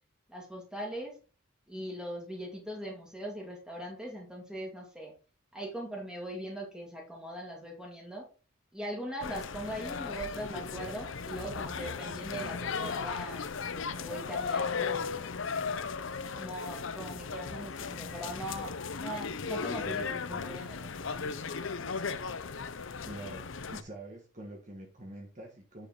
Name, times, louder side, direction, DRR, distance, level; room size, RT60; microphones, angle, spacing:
voice 1, 0.3-1.1 1.7-5.1 5.5-8.3 8.7-13.4 13.9-15.2 15.5-15.9 16.3-18.7 19.0-21.5, equal, 5° right, -1 dB, 2.4 m, -41 dB
sound 1, 9.2-23.8, left 5 dB, 65° left, 0.6 m, -36 dB
voice 2, 23.1-25.9, right 1 dB, 35° right, 1 dB, 1.4 m, -45 dB
9.1 x 4.8 x 4.4 m, 0.36 s
head